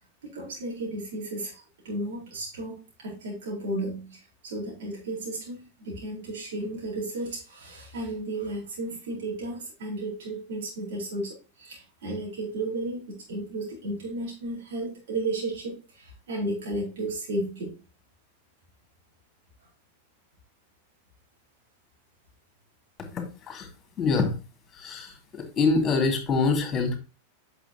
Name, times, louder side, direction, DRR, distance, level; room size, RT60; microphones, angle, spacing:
voice 1, 0.2-17.8, right 2 dB, 60° right, -4 dB, 4.6 m, -34 dB
voice 2, 23.0-23.7 24.0-24.4 24.7-27.0, left 4 dB, 25° left, 4 dB, 2.6 m, -25 dB
8.9 x 6.4 x 3.0 m, 0.31 s
figure-of-eight pair, 90°, 0 cm